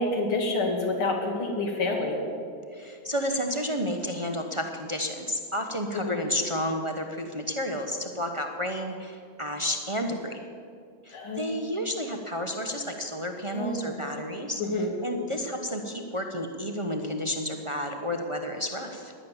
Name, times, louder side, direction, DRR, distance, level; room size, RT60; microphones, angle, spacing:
voice 1, 0.0-2.2 6.1-6.2 11.1-11.5 13.5-14.0 14.6-14.9, left 2 dB, 80° left, 1 dB, 3.2 m, -28 dB
voice 2, 2.7-10.5 11.0-19.1, equal, 25° right, 4 dB, 0.6 m, -31 dB
17.0 x 11.0 x 7.3 m, 2.3 s
omnidirectional pair, 2.3 m